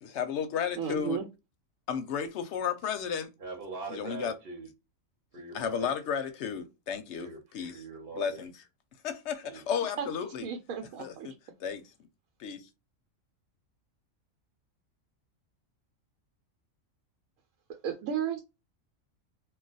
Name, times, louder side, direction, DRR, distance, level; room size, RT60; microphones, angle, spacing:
voice 1, 0.0-1.2 1.9-3.3 3.9-4.3 5.5-7.3 7.5-7.7 8.2-8.5 9.0-10.5 11.0-11.3 11.6-11.8 12.4-12.7, left 7 dB, 65° left, 0.8 m, -33 dB
voice 2, 0.8-1.3 10.0-10.1 10.4-11.3 17.8-18.4, right 8 dB, 90° right, 1.1 m, -33 dB
voice 3, 3.4-4.7 5.3-5.9 7.1-7.4 7.7-8.4 9.5-9.7, right 3 dB, 50° right, 0.9 m, -42 dB
2.3 x 2.2 x 3.9 m
omnidirectional pair, 1.4 m